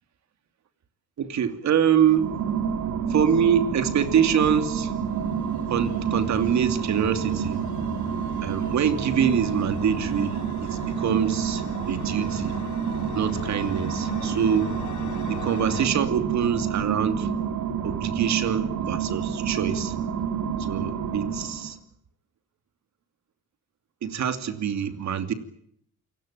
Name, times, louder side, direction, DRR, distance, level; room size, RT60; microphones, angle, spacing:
voice 1, 1.2-2.4 3.1-4.9 5.7-7.6 8.4-12.6 13.1-14.8 15.3-17.3 17.8-19.9 20.6-21.8 24.0-25.3, right 8 dB, 65° right, 2.9 m, -25 dB
sound 1, 2.0-21.8, right 7 dB, 85° right, 2.7 m, -29 dB
sound 2, 4.3-15.9, left 7 dB, 80° left, 5.3 m, -40 dB
28.5 x 18.0 x 8.9 m
cardioid pair, 90°, 30 cm